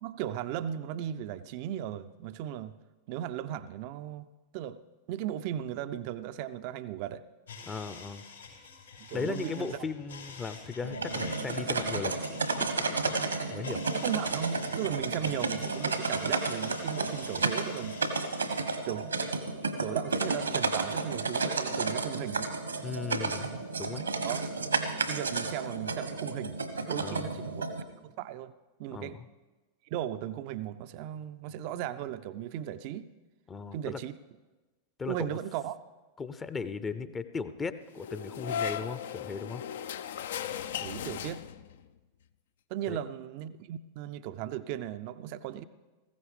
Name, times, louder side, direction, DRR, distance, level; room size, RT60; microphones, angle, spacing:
voice 1, 0.0-2.7 3.1-4.3 4.5-4.8 5.1-7.2 9.1-9.8 13.9-18.0 18.8-19.3 19.8-22.5 24.2-24.5 25.0-26.6 26.9-27.7 28.0-28.5 28.8-29.2 29.9-33.1 33.7-34.1 35.1-35.8 40.5-41.4 42.7-45.6, right 11 dB, 45° right, 13 dB, 0.5 m, -36 dB
sound 1, 7.5-19.1, left 5 dB, 75° left, 4.3 m, -48 dB
voice 2, 7.6-8.2 9.1-12.2 12.6-13.8 22.8-24.1 27.0-27.4 28.9-29.3 33.5-34.0 35.0-35.4 36.2-39.6 42.9-43.0, left 5 dB, 20° left, 12 dB, 0.6 m, -37 dB
sound 2, 10.8-27.8, right 3 dB, 80° right, 1.2 m, -32 dB
sound 3, 37.9-41.8, left 8 dB, 60° left, 0.5 m, -37 dB
19.5 x 15.5 x 3.4 m, 1.2 s
figure-of-eight pair, 90°, 0 cm